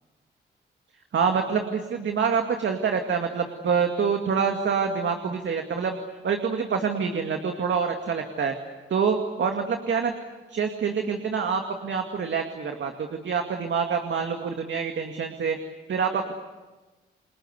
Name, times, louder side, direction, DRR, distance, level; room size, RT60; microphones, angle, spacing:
voice 1, 1.1-6.0 6.2-8.5 8.9-10.1 10.5-15.6 15.9-16.3, right 6 dB, 65° right, 4 dB, 2.3 m, -26 dB
29.5 x 22.0 x 8.2 m, 1.2 s
cardioid pair, 65°, 20 cm